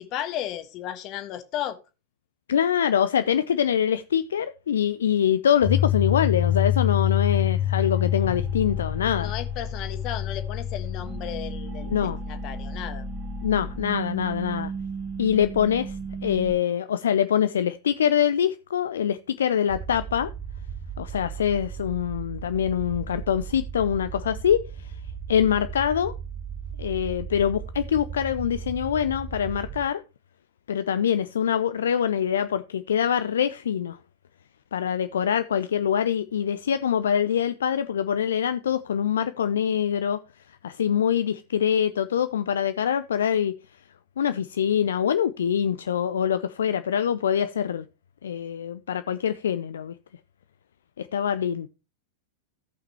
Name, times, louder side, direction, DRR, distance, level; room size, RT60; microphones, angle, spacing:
voice 1, 0.0-1.8 9.2-11.9 12.3-13.1, left 11 dB, 40° left, 1.3 m, -34 dB
voice 2, 2.5-9.3 11.9-12.2 13.4-14.7 15.2-16.0 16.2-20.3 21.0-24.9 25.3-26.1 26.8-30.0 30.7-34.0 34.7-40.2 40.6-43.5 44.2-47.9 48.2-49.9 51.0-51.7, left 9 dB, 65° left, 0.4 m, -24 dB
sound 1, 5.6-16.5, left 7 dB, 40° right, 2.7 m, -28 dB
sound 2, 19.7-29.9, right 6 dB, 25° right, 0.7 m, -37 dB
17.0 x 5.7 x 2.9 m
figure-of-eight pair, 90°, 0 cm